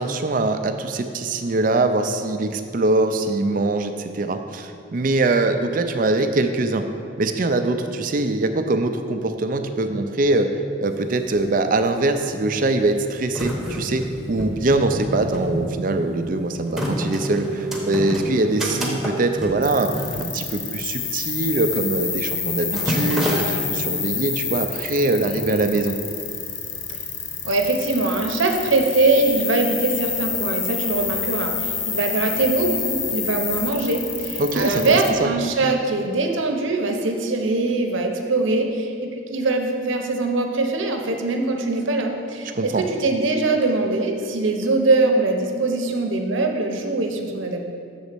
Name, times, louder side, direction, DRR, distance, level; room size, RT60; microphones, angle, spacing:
voice 1, 0.0-6.9 7.2-10.5 10.8-19.9 20.2-26.0 34.4-35.3 42.5-42.8, right 2 dB, 45° right, 7 dB, 0.4 m, -23 dB
sound 1, 10.9-11.0 11.2-12.0 12.7-21.0 21.2-21.5 21.8-22.2 22.4-23.4, equal, ahead, 0.9 m, -28 dB
sound 2, 19.6-35.1, left 7 dB, 70° left, 0.7 m, -28 dB
voice 2, 27.4-47.6, right 3 dB, 80° right, 3 dB, 0.8 m, -22 dB
7.1 x 4.1 x 6.7 m, 2.4 s
head